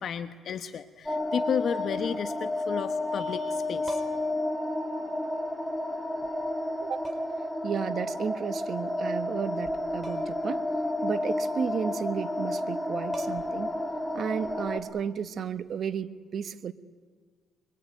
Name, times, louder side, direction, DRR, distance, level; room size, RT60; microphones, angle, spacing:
voice 1, 0.0-4.0, left 7 dB, 60° left, 10 dB, 1.1 m, -32 dB
sound 1, 1.1-14.8, left 1 dB, 5° left, 3.3 m, -31 dB
sound 2, 3.9-4.4 5.8-5.9 7.0-7.5 10.0-10.5 10.8-10.9 12.7-12.8 13.1-13.7 15.7-15.9, right 2 dB, 25° right, 3.8 m, -42 dB
voice 2, 6.8-7.1 7.6-10.6 11.0-13.7 14.1-16.7, right 7 dB, 55° right, 11 dB, 1.4 m, -33 dB
24.0 x 23.0 x 9.6 m, 1.5 s
cardioid pair, 90°, 0 cm